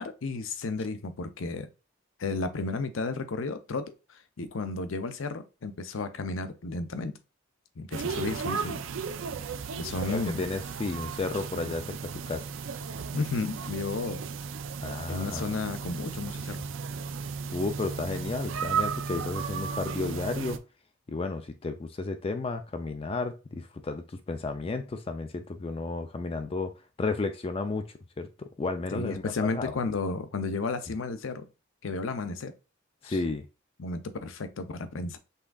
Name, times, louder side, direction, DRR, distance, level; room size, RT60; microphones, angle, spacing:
voice 1, 0.0-1.7 2.2-7.1 7.8-8.8 9.8-10.4 13.1-14.3 15.1-16.7 28.9-31.5 31.8-32.5 33.0-33.2 33.8-35.2, left 3 dB, 75° left, 0.6 m, -33 dB
sound 1, 7.9-20.6, right 6 dB, 70° right, 0.4 m, -35 dB
voice 2, 10.1-12.4 14.8-15.5 17.5-20.6 21.1-26.7 27.0-27.8 28.2-29.7 33.0-33.5, left 3 dB, 25° left, 0.3 m, -33 dB
5.6 x 3.6 x 2.3 m
head